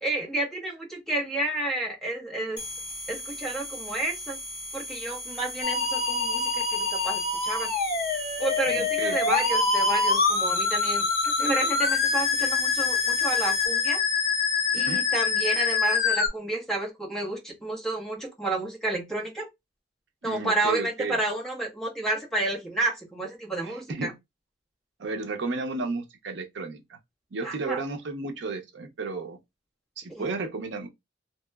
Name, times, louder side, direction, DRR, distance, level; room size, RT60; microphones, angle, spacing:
voice 1, 0.0-2.6 3.1-4.4 4.7-7.7 8.4-14.0 14.7-19.5 20.2-24.1 27.4-27.8 30.1-30.3, right 2 dB, 5° left, 1.0 m, -30 dB
sound 1, 2.6-14.0, left 1 dB, 25° left, 1.5 m, -38 dB
Musical instrument, 5.6-16.3, left 4 dB, 50° left, 0.8 m, -25 dB
voice 2, 8.7-9.3 14.8-15.0 20.2-21.2 23.6-24.1 25.0-27.0 27.3-29.4 30.0-30.9, right 3 dB, 65° right, 0.5 m, -33 dB
2.9 x 2.8 x 2.2 m
head